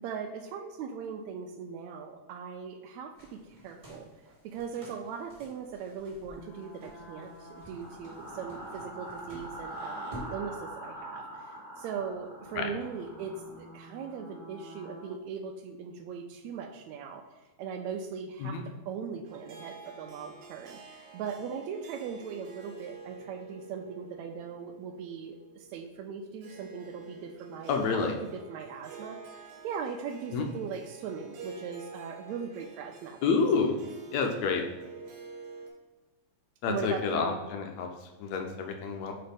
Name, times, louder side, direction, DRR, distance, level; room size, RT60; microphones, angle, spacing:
voice 1, 0.0-4.1 4.4-17.2 17.6-18.6 18.9-33.3 36.6-37.4, right 6 dB, 80° right, 5 dB, 1.6 m, -39 dB
sound 1, 3.2-10.4, equal, 25° right, 1.2 m, -50 dB
sound 2, 6.3-15.1, right 1 dB, 5° left, 1.1 m, -44 dB
Harp, 19.2-35.7, right 4 dB, 65° right, 1.8 m, -49 dB
voice 2, 27.7-28.2 30.3-30.5 33.2-33.8 34.1-34.6 36.6-39.1, left 5 dB, 75° left, 4 dB, 1.7 m, -29 dB
4.8 x 4.3 x 5.2 m, 1.2 s
omnidirectional pair, 3.6 m